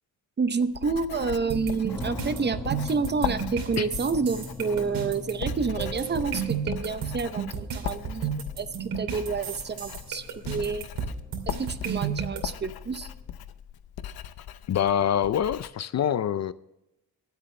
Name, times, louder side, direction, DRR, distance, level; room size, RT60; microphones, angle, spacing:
voice 1, 0.4-10.9 11.5-13.1, right 5 dB, 30° right, 0.7 m, -29 dB
Writing, 0.6-15.7, left 10 dB, 90° left, 0.8 m, -39 dB
sound 1, 1.5-12.4, right 7 dB, 70° right, 2.8 m, -32 dB
sound 2, 1.9-13.3, left 2 dB, 10° left, 1.2 m, -43 dB
voice 2, 14.7-16.5, left 9 dB, 45° left, 0.5 m, -25 dB
24.0 x 8.3 x 3.2 m
wide cardioid pair, 145°, 36 cm